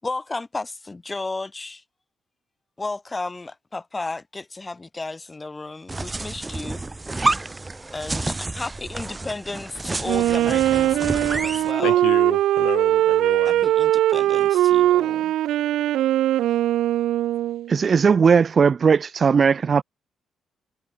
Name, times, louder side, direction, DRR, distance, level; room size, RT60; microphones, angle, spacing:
voice 1, 0.0-1.8 2.8-6.8 7.9-12.0 13.4-15.3, left 3 dB, 20° left, 6.6 m, -33 dB
sound 1, 5.9-11.7, right 2 dB, 20° right, 1.7 m, -29 dB
Wind instrument woodwind instrument, 10.0-17.7, right 13 dB, 85° right, 0.8 m, -20 dB
voice 2, 11.8-13.6, left 15 dB, 90° left, 6.2 m, -31 dB
voice 3, 17.7-19.8, right 6 dB, 45° right, 1.6 m, -18 dB
cardioid pair, 90°, 0 cm